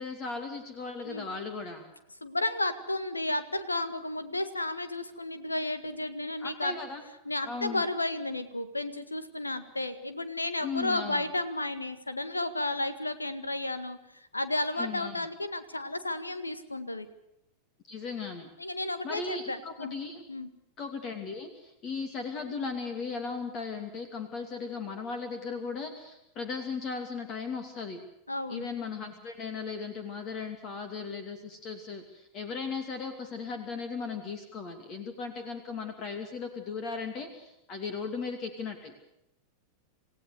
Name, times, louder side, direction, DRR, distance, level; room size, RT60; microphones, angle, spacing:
voice 1, 0.0-1.9 6.4-7.0 7.4-7.8 10.6-11.2 14.7-15.3 17.9-18.5 19.0-20.2 20.8-28.0 28.5-38.9, left 5 dB, 35° left, 7 dB, 2.7 m, -37 dB
voice 2, 2.2-6.8 7.3-17.1 18.6-19.9 20.3-20.5 28.3-28.7, left 2 dB, 80° left, 11 dB, 1.8 m, -33 dB
28.0 x 16.5 x 6.7 m, 0.84 s
figure-of-eight pair, 90°, 0 cm